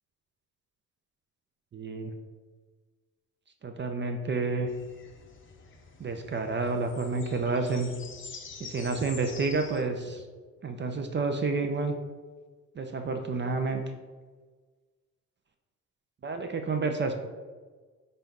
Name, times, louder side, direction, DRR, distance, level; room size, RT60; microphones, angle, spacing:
voice 1, 1.7-2.1 3.6-4.7 6.0-7.9 8.6-10.2 10.6-11.9 12.8-13.8 16.2-17.1, right 3 dB, 30° right, 5 dB, 0.5 m, -29 dB
sound 1, 4.7-9.8, left 5 dB, 30° left, 0.6 m, -47 dB
4.3 x 2.6 x 3.6 m, 1.4 s
hypercardioid pair, 50°, 38 cm